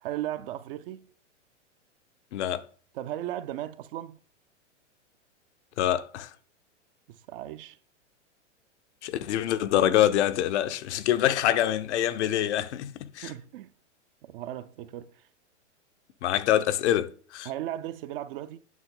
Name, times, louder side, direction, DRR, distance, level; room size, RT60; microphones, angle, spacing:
voice 1, 0.0-1.1 2.9-4.2 7.1-7.8 13.2-13.7 14.2-15.2 17.4-18.6, right 13 dB, 50° right, 0.6 m, -36 dB
voice 2, 2.3-2.6 5.8-6.3 9.0-13.3 16.2-17.5, left 12 dB, 65° left, 0.8 m, -25 dB
9.5 x 5.7 x 3.9 m
hypercardioid pair, 120°, 37 cm